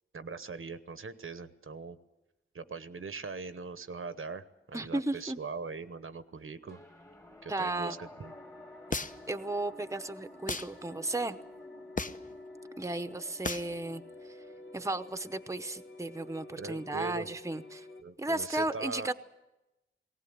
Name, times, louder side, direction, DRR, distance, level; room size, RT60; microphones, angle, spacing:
voice 1, 0.1-2.0 2.5-6.8 7.4-8.3 16.6-17.3 18.0-19.1, right 4 dB, 80° right, 12 dB, 1.1 m, -41 dB
voice 2, 4.7-5.4 7.5-8.0 9.3-11.4 12.8-14.0 14.7-17.8 18.2-19.1, right 2 dB, 15° right, 10 dB, 0.8 m, -34 dB
sound 1, 6.7-17.4, left 1 dB, 15° left, 1.5 m, -54 dB
sound 2, 8.2-18.0, left 2 dB, 75° left, 2.1 m, -51 dB
sound 3, 8.9-9.4 10.5-10.7 12.0-12.3 13.4-13.7, left 3 dB, 40° left, 0.8 m, -34 dB
19.0 x 18.5 x 8.7 m, 0.98 s
wide cardioid pair, 90°, 21 cm